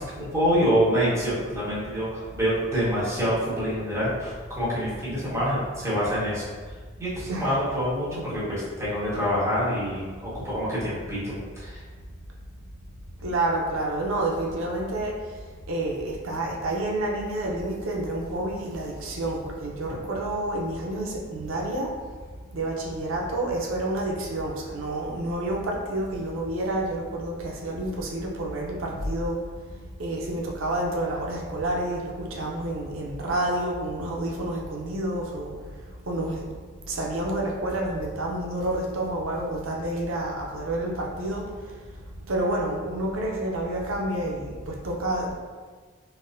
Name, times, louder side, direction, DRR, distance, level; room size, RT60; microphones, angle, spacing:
voice 1, 0.0-6.4 7.0-11.8, equal, 15° right, -10 dB, 1.0 m, -26 dB
voice 2, 13.2-15.1 15.7-21.9 22.5-29.4 30.0-35.5 36.1-36.5 36.9-41.4 42.3-45.3, right 1 dB, 90° right, -1 dB, 0.6 m, -29 dB
4.2 x 2.1 x 2.5 m, 1.5 s
head